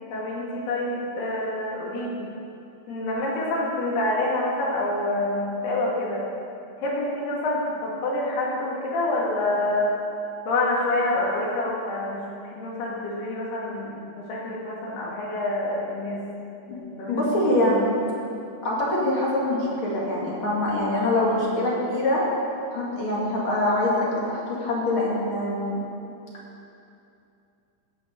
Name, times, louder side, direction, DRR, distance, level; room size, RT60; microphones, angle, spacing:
voice 1, 0.1-2.3 2.9-6.3 6.8-9.9 10.5-12.2 12.5-16.2 16.7-17.8, left 2 dB, 75° left, -4 dB, 4.2 m, -27 dB
voice 2, 17.1-17.8 18.6-22.2 22.7-25.8, left 1 dB, 40° left, -5 dB, 2.6 m, -24 dB
16.5 x 6.3 x 6.8 m, 2.6 s
omnidirectional pair, 4.7 m